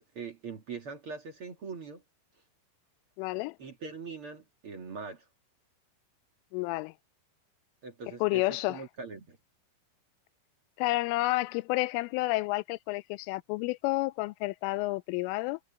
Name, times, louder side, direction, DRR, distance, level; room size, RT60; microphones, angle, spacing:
voice 1, 0.0-2.0 3.6-5.2 7.8-9.4, right 5 dB, 50° right, 1.7 m, -42 dB
voice 2, 3.2-3.6 6.5-6.9 8.2-8.8 10.8-15.6, left 21 dB, 90° left, 3.1 m, -30 dB
omnidirectional pair, 5.6 m